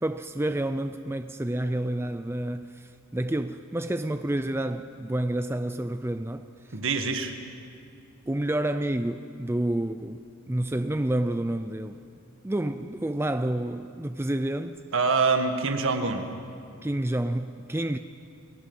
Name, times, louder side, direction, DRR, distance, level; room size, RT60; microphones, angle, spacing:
voice 1, 0.0-6.8 8.3-12.0 12.4-14.8 16.8-18.0, right 1 dB, 10° right, 0.5 m, -29 dB
voice 2, 6.7-7.3 14.9-16.3, right 4 dB, 60° right, 1.8 m, -25 dB
30.0 x 22.0 x 5.5 m
head